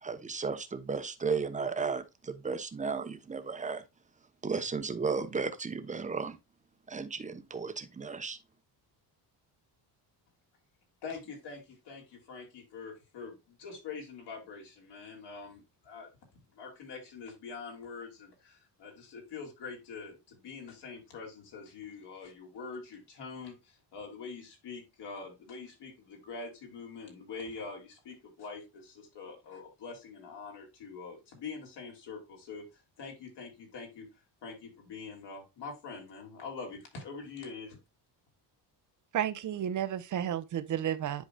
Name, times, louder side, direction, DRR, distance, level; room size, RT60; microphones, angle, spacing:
voice 1, 0.0-3.8 4.4-6.4 6.9-8.4, right 5 dB, 15° right, 0.9 m, -34 dB
voice 2, 11.0-16.1 16.5-34.1 34.4-37.8, left 4 dB, 65° left, 3.1 m, -44 dB
voice 3, 39.1-41.3, right 10 dB, 45° right, 0.8 m, -32 dB
10.5 x 4.8 x 2.3 m
cardioid pair, 155°, 43 cm